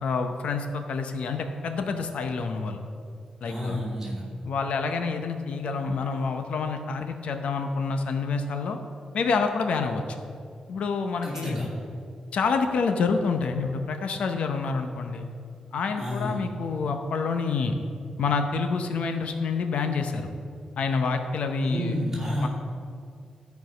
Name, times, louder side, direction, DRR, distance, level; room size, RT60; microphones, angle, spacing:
voice 1, 0.0-2.8 3.4-3.8 4.4-8.8 9.1-10.2 10.7-11.6 12.3-15.3 15.7-17.7 18.2-20.3 20.8-22.0 22.4-22.5, left 4 dB, 80° left, 6 dB, 0.7 m, -27 dB
voice 2, 3.4-4.2 11.2-11.7 16.0-16.4 21.6-22.5, equal, 15° right, -6 dB, 2.6 m, -30 dB
13.0 x 4.7 x 5.2 m, 2.2 s
wide cardioid pair, 175°, 2 cm